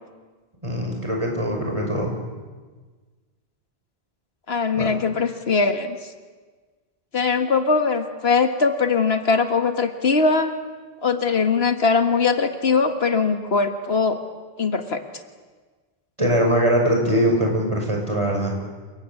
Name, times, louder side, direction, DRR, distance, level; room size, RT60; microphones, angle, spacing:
voice 1, 0.6-2.2 4.7-4.9 16.2-18.6, equal, 30° right, 1 dB, 5.8 m, -22 dB
voice 2, 4.5-6.0 7.1-10.5 11.0-14.2 14.6-15.0, left 4 dB, 80° left, 7 dB, 1.9 m, -21 dB
28.5 x 19.0 x 8.7 m, 1.4 s
omnidirectional pair, 1.0 m